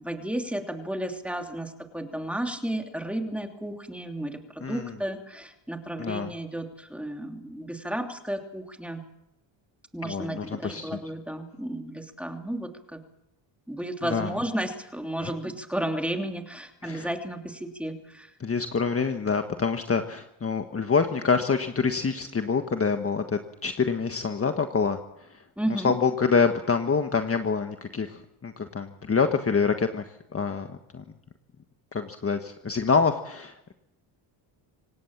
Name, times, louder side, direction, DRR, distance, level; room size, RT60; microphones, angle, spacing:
voice 1, 0.0-9.0 9.9-13.0 13.7-18.3 25.6-25.9, right 1 dB, ahead, 4 dB, 3.0 m, -33 dB
voice 2, 4.6-4.9 6.0-6.3 10.0-10.9 14.1-14.3 15.2-15.3 16.8-17.1 18.4-25.0 25.8-30.0 30.3-30.7 30.9-31.0 31.9-33.7, left 5 dB, 25° left, 6 dB, 1.6 m, -26 dB
26.0 x 17.5 x 7.4 m, 0.81 s
cardioid pair, 110°, 49 cm